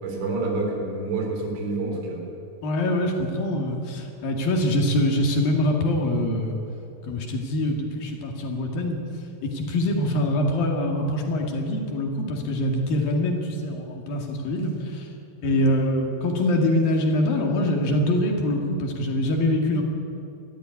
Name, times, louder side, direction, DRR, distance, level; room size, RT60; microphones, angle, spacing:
voice 1, 0.0-2.3 15.4-15.6, right 3 dB, 85° right, 2 dB, 5.9 m, -28 dB
voice 2, 2.6-6.6 7.0-9.0 9.4-15.1 15.4-19.8, left 1 dB, 60° left, 1 dB, 3.7 m, -24 dB
20.0 x 15.0 x 9.7 m, 2.8 s
omnidirectional pair, 5.1 m